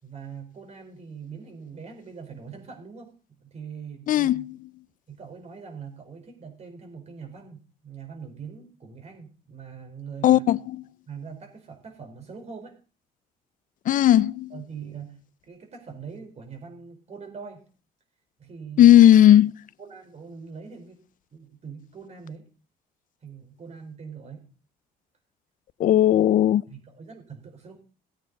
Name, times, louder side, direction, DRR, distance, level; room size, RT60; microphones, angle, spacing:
voice 1, 0.0-4.5 5.1-7.6 7.8-10.5 11.1-12.8 14.5-15.2 15.5-17.6 18.4-19.0 19.8-21.0 21.3-22.4 23.2-24.4 26.7-27.8, right 6 dB, 40° right, 4.4 m, -42 dB
voice 2, 4.1-4.5 10.2-10.8 13.9-14.5 18.8-19.5 25.8-26.6, left 12 dB, 50° left, 0.5 m, -16 dB
17.5 x 8.7 x 4.0 m
cardioid pair, 110°, 17 cm